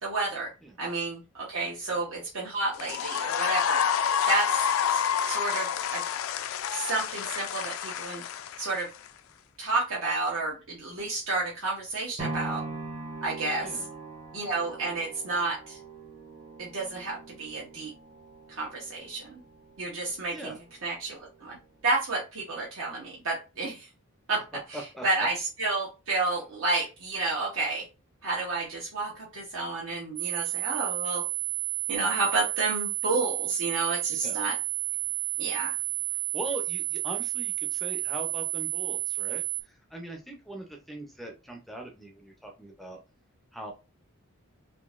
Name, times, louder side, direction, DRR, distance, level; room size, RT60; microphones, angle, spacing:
voice 1, 0.0-0.5 0.8-3.8 4.3-6.0 6.7-8.2 8.6-8.9 9.6-12.6 13.2-13.8 14.3-15.8 16.6-17.9 18.5-19.4 19.8-20.5 20.8-21.6 21.8-23.9 24.3-24.4 24.7-27.9 28.2-31.2 31.9-34.5 35.4-35.8, right 3 dB, 65° right, -4 dB, 0.9 m, -31 dB
voice 2, 1.6-2.1 13.6-13.8 20.0-20.6 24.7-25.0 34.2-34.5 36.3-43.0 43.5-43.7, right 1 dB, ahead, 2 dB, 0.4 m, -41 dB
sound 1, 2.7-9.1, left 8 dB, 70° left, 0.3 m, -28 dB
sound 2, 12.2-20.3 20.8-20.9, right 3 dB, 35° right, 0.8 m, -41 dB
sound 3, 30.2-39.6, right 19 dB, 85° right, 0.5 m, -31 dB
3.7 x 2.7 x 2.4 m, 0.29 s
head